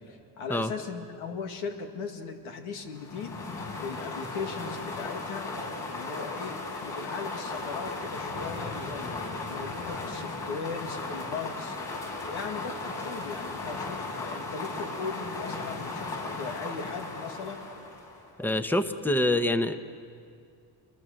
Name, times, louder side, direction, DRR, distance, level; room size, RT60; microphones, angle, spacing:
voice 1, 0.0-3.4 3.8-5.5 5.8-11.8 12.2-17.7, left 5 dB, 90° left, 3 dB, 2.3 m, -38 dB
sound 1, 2.9-18.3, left 3 dB, 65° left, 7.1 m, -36 dB
voice 2, 18.4-19.8, left 1 dB, 5° left, 9 dB, 1.1 m, -25 dB
27.5 x 23.0 x 6.6 m, 2.3 s
supercardioid pair, 75°, 47 cm